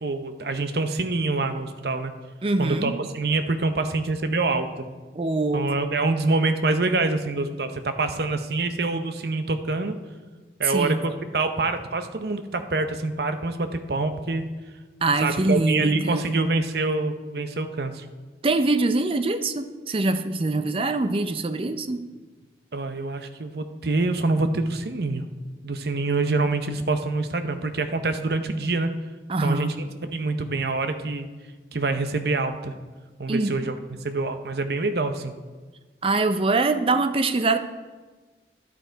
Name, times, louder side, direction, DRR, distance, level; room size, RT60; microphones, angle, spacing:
voice 1, 0.0-2.1 2.6-4.9 5.5-10.0 10.6-14.5 15.2-18.1 22.7-25.3 25.6-28.9 29.4-29.7 30.1-31.3 31.7-32.7 33.2-33.7 34.0-35.3, right 3 dB, 65° right, 8 dB, 0.7 m, -26 dB
voice 2, 2.4-3.0 5.1-5.7 10.6-11.0 15.0-16.4 18.4-22.0 29.3-29.7 33.3-33.6 36.0-37.6, right 3 dB, 30° right, 10 dB, 0.5 m, -23 dB
11.0 x 9.2 x 4.5 m, 1.4 s
head